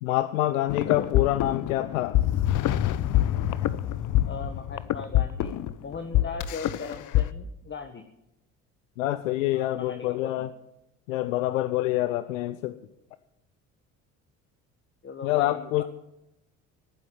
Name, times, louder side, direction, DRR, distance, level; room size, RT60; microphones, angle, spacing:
voice 1, 0.0-2.2 9.0-10.5 11.1-12.8 15.2-15.8, left 15 dB, 75° left, 13 dB, 0.8 m, -26 dB
sound 1, 0.7-7.2, left 13 dB, 50° left, 0.9 m, -25 dB
voice 2, 0.8-1.2 4.2-8.1 9.5-10.5 15.0-15.8, left 5 dB, 30° left, 7 dB, 1.6 m, -39 dB
18.5 x 9.5 x 7.3 m, 0.88 s
hypercardioid pair, 60°, 40 cm